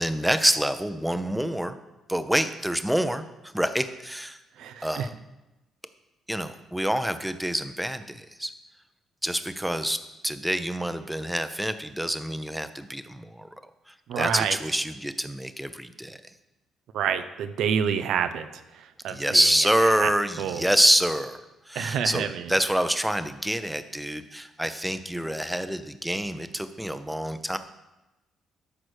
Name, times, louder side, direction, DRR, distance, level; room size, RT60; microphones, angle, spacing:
voice 1, 0.0-1.8 2.1-4.4 4.8-5.1 6.3-8.5 9.2-10.0 10.2-13.5 13.9-16.2 19.1-21.4 21.7-27.6, equal, 5° right, 10 dB, 0.7 m, -26 dB
voice 2, 4.6-5.1 14.1-14.6 16.9-18.5 18.7-19.4 20.0-20.1 20.4-20.6 21.7-22.5, right 8 dB, 80° right, 10 dB, 0.7 m, -28 dB
13.0 x 4.9 x 6.4 m, 1.0 s
cardioid pair, 90°, 0 cm